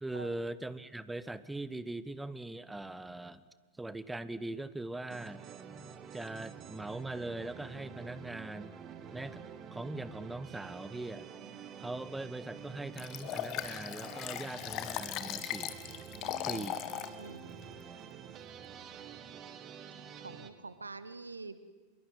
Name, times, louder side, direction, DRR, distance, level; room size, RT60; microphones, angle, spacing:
voice 1, 0.0-3.4 3.8-5.4 6.1-8.7 9.1-9.4 9.7-11.3 11.8-15.7 16.4-16.8, right 2 dB, 5° right, 16 dB, 0.9 m, -41 dB
sound 1, 5.1-20.5, right 7 dB, 30° right, 1.8 m, -48 dB
Liquid, 13.0-17.1 17.6-17.7, left 12 dB, 40° left, 1.6 m, -38 dB
voice 2, 17.2-17.6 20.2-21.6, right 3 dB, 80° right, 13 dB, 1.3 m, -46 dB
25.5 x 22.0 x 9.4 m, 1.3 s
figure-of-eight pair, 90°, 0 cm